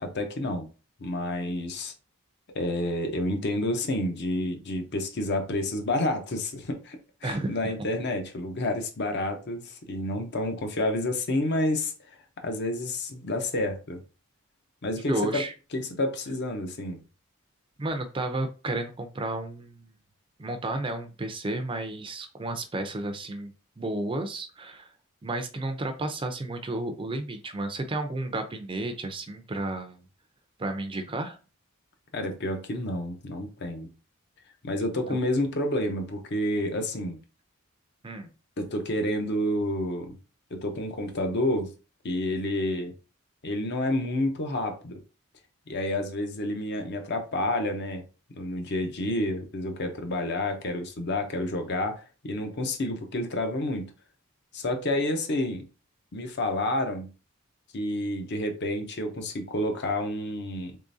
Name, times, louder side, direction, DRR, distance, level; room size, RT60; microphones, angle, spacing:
voice 1, 0.0-0.7 1.0-1.9 2.5-11.9 12.4-14.0 14.8-15.4 15.7-17.0 32.1-33.9 34.6-37.2 38.6-40.2 40.5-41.7 42.0-42.9 43.4-45.0 45.7-48.1 48.4-53.9 54.5-55.7 56.1-57.1 57.7-60.8, left 1 dB, 50° left, 0.7 m, -29 dB
voice 2, 7.2-7.7 15.1-15.5 17.8-19.9 20.4-23.5 23.8-24.9 25.2-30.0 30.6-31.4 35.1-35.2 38.0-38.3, right 2 dB, 25° right, 0.4 m, -32 dB
3.6 x 3.3 x 2.6 m
head